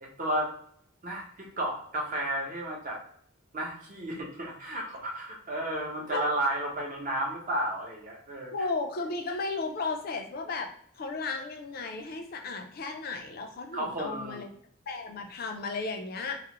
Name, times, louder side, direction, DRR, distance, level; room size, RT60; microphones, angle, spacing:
voice 1, 0.0-0.5 1.0-3.0 3.5-8.5 13.7-14.5, right 1 dB, 40° right, -1 dB, 0.7 m, -32 dB
voice 2, 8.5-10.7 11.0-14.5 14.9-16.4, left 3 dB, 45° left, 4 dB, 0.4 m, -34 dB
2.3 x 2.0 x 2.8 m, 0.63 s
head